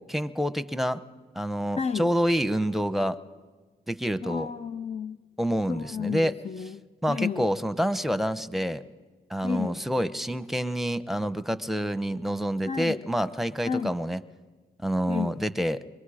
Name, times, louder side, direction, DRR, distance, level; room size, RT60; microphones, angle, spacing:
voice 1, 0.1-1.0 1.3-3.2 3.9-4.5 5.4-6.3 7.0-8.8 9.3-14.2 14.8-15.8, equal, ahead, 13 dB, 0.9 m, -27 dB
voice 2, 1.8-2.1 4.2-5.2 5.7-6.8 7.1-7.5 9.4-9.8 12.7-13.0 13.6-13.9 15.1-15.4, left 6 dB, 35° left, 10 dB, 0.6 m, -31 dB
26.0 x 23.0 x 5.0 m, 1.4 s
cardioid pair, 70°, 18 cm